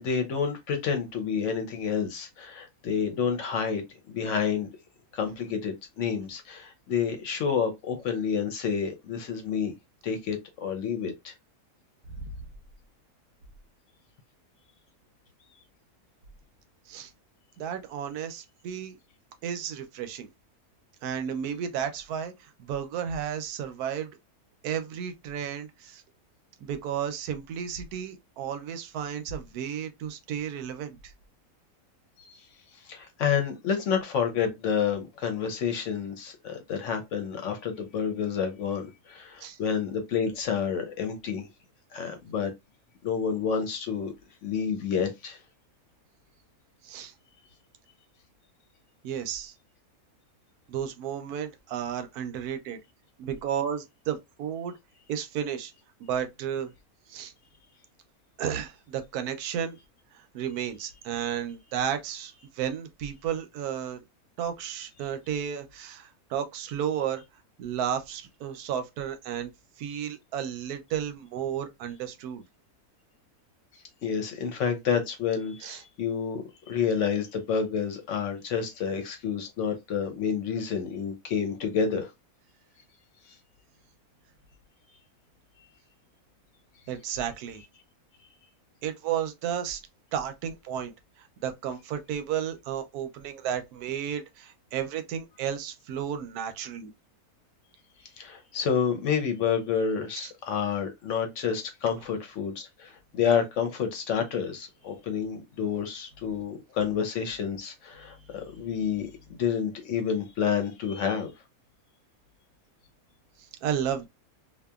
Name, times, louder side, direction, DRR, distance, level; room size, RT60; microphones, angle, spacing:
voice 1, 0.0-4.7 5.1-9.7 10.0-11.3 32.3-32.4 32.9-41.5 41.9-42.5 43.0-44.1 44.4-45.4 74.0-82.1 98.2-111.3, left 7 dB, 65° left, 0.8 m, -29 dB
voice 2, 17.6-19.0 19.4-20.3 21.0-22.3 22.6-24.1 24.6-26.0 26.6-31.0 39.4-39.6 46.8-47.1 49.0-49.5 50.7-52.8 53.2-54.7 55.1-55.7 56.0-56.7 57.1-57.3 58.4-59.8 60.3-64.0 64.4-67.2 67.6-69.5 69.8-72.4 75.6-75.8 86.9-87.6 88.8-89.8 90.1-90.9 91.4-96.9 113.6-114.1, right 9 dB, 85° right, 1.1 m, -33 dB
2.8 x 2.3 x 2.3 m
omnidirectional pair, 1.6 m